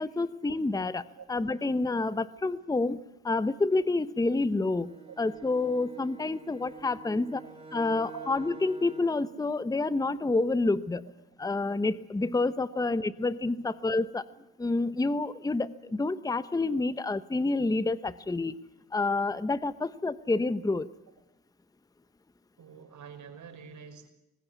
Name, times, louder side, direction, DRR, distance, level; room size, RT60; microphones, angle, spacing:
voice 1, 0.0-7.4 7.7-11.1 11.4-14.3 14.6-18.6 18.9-20.9, left 3 dB, 10° left, 15 dB, 0.9 m, -28 dB
Bowed string instrument, 4.6-9.4, right 4 dB, 15° right, 2.5 m, -47 dB
voice 2, 22.6-24.1, right 6 dB, 50° right, 7 dB, 5.7 m, -46 dB
24.5 x 20.0 x 8.3 m, 0.90 s
supercardioid pair, 75°, 38 cm